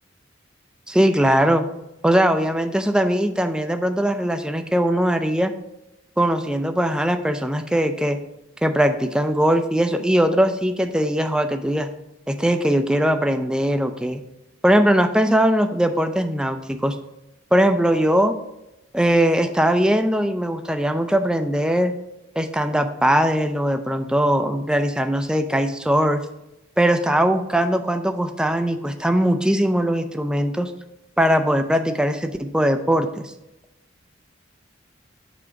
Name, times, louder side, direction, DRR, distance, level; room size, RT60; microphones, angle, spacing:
voice 1, 0.9-1.6 2.0-5.5 6.2-8.2 8.6-11.9 12.3-14.2 14.6-17.0 17.5-18.3 18.9-21.9 22.4-26.3 26.8-30.7 31.2-33.3, equal, 5° right, 7 dB, 0.4 m, -20 dB
6.9 x 3.7 x 4.7 m, 0.92 s
head